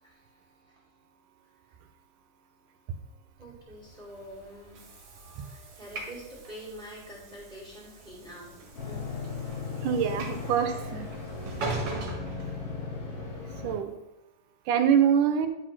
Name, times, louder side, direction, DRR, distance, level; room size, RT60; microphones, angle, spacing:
voice 1, 3.4-5.0 5.3-9.1 10.0-10.1, equal, 15° right, -4 dB, 2.0 m, -46 dB
Train / Sliding door, 3.9-13.2, right 2 dB, 50° right, 2.4 m, -41 dB
voice 2, 5.2-5.5 9.8-11.1 13.6-14.0 14.7-15.5, right 8 dB, 75° right, 7 dB, 2.1 m, -25 dB
sound 1, 8.7-13.8, left 4 dB, 85° left, 5.2 m, -37 dB
11.0 x 4.1 x 6.0 m, 0.96 s
omnidirectional pair, 3.9 m